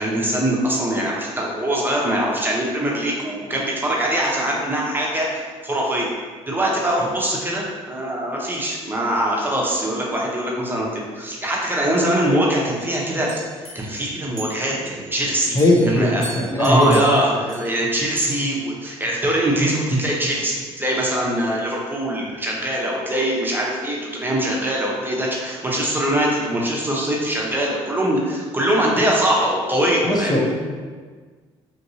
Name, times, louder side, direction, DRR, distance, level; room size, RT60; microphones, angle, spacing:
voice 1, 0.0-6.1 6.5-13.3 13.7-15.6 15.9-16.3 16.6-30.5, right 1 dB, 15° right, -3 dB, 0.8 m, -22 dB
sound 1, 12.8-15.2 15.4-17.9 18.2-18.3, right 2 dB, 5° left, 1.1 m, -38 dB
voice 2, 15.5-17.0 30.0-30.5, left 1 dB, 30° left, 0 dB, 0.7 m, -18 dB
2.9 x 2.5 x 2.8 m, 1.5 s
hypercardioid pair, 60°, 14 cm